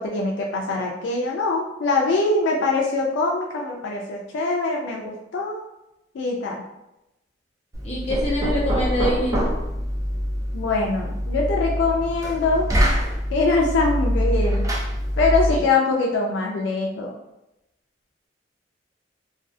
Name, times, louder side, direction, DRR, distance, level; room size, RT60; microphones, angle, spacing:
voice 1, 0.0-5.6 6.1-6.6 10.5-12.7 13.3-14.7 15.2-17.1, left 3 dB, 75° left, -1 dB, 0.3 m, -23 dB
Knock, 7.7-15.6, equal, 20° right, 0.4 m, -24 dB
voice 2, 7.8-9.4 15.5-15.6, equal, 35° left, -5 dB, 0.8 m, -25 dB
2.4 x 2.3 x 2.4 m, 0.90 s
head